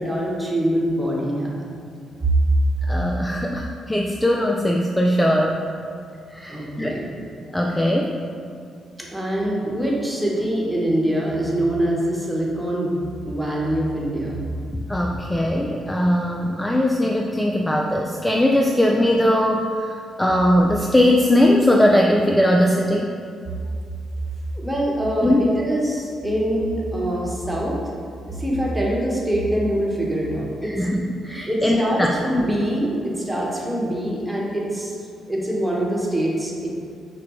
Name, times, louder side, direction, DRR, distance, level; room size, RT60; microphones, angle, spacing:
voice 1, 0.0-1.6 6.5-7.1 9.0-14.4 24.5-27.8 28.2-30.7 31.5-34.9 35.3-36.7, right 1 dB, 5° right, -4 dB, 1.1 m, -24 dB
voice 2, 2.9-5.6 6.3-7.0 7.5-8.2 14.9-23.1 25.2-25.4 30.6-32.1, left 1 dB, 10° left, 0 dB, 0.3 m, -20 dB
5.9 x 2.2 x 3.1 m, 2.3 s
hypercardioid pair, 45°, 0 cm